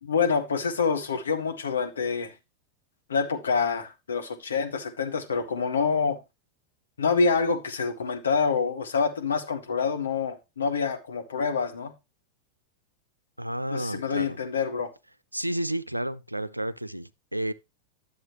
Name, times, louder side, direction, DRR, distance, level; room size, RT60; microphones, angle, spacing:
voice 1, 0.0-2.3 3.1-6.2 7.0-11.9 13.7-14.9, left 5 dB, 70° left, 1.6 m, -26 dB
voice 2, 13.4-14.4 15.3-17.5, right 1 dB, 90° right, 0.4 m, -31 dB
11.0 x 7.3 x 3.1 m
figure-of-eight pair, 90°, 0 cm